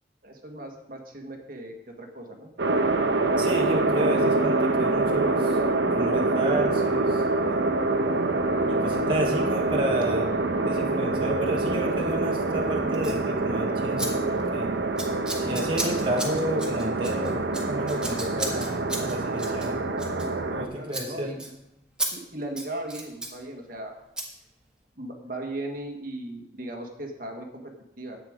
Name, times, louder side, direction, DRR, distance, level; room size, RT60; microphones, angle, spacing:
voice 1, 0.2-2.5 20.7-21.4 22.1-23.9 25.0-28.2, right 1 dB, 50° right, 3 dB, 1.6 m, -37 dB
sound 1, 2.6-20.7, right 2 dB, 70° right, 1.0 m, -25 dB
voice 2, 3.4-7.6 8.7-10.3 10.6-14.7 15.4-19.8 20.5-21.3, right 1 dB, 30° right, -2 dB, 1.3 m, -31 dB
Scissors, 12.9-13.2 14.0-14.1 14.3-14.6 15.0-20.6 20.9-21.1 21.4-21.5 22.0-22.1 22.4-23.3 24.2-24.3, right 2 dB, 5° right, 1.7 m, -34 dB
11.0 x 8.8 x 5.0 m, 0.89 s
head